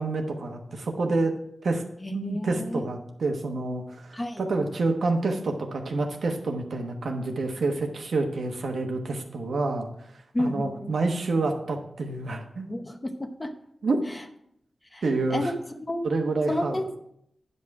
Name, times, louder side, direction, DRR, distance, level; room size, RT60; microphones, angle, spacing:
voice 1, 0.0-1.3 1.6-1.8 2.1-10.1 10.4-12.7 13.8-14.0 15.0-15.5 16.0-16.8, right 3 dB, 75° right, 4 dB, 1.1 m, -28 dB
voice 2, 2.0-2.8 4.1-4.4 10.3-10.9 12.7-13.5 14.9-15.0 15.3-15.5 15.9-16.1 16.5-17.0, left 1 dB, 20° left, 7 dB, 0.8 m, -30 dB
9.7 x 5.5 x 4.7 m, 0.74 s
wide cardioid pair, 100°, 0 cm